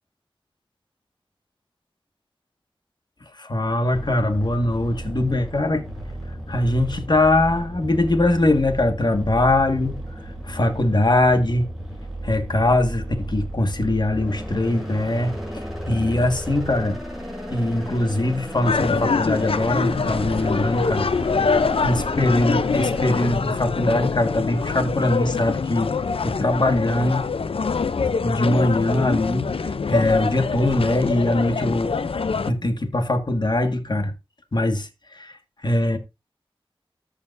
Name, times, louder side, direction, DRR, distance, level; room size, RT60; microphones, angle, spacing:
voice 1, 3.3-5.8 6.5-11.7 12.2-17.0 17.5-21.1 21.4-25.9 26.2-27.4 28.2-34.1 34.5-36.0, left 1 dB, 50° left, 1.8 m, -22 dB
sound 1, 3.9-23.3, equal, 5° right, 6.9 m, -34 dB
sound 2, 18.6-32.5, left 5 dB, 75° left, 0.6 m, -24 dB
14.0 x 6.8 x 2.6 m
wide cardioid pair, 75°, 10 cm